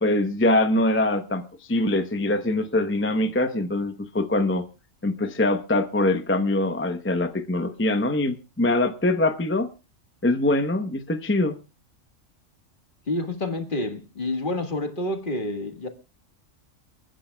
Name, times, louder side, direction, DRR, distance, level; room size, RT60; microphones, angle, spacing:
voice 1, 0.0-4.6 5.0-9.7 10.2-11.6, left 2 dB, 15° left, 0.6 m, -23 dB
voice 2, 13.1-15.9, left 2 dB, 40° left, 1.6 m, -28 dB
29.0 x 10.0 x 2.2 m
omnidirectional pair, 1.4 m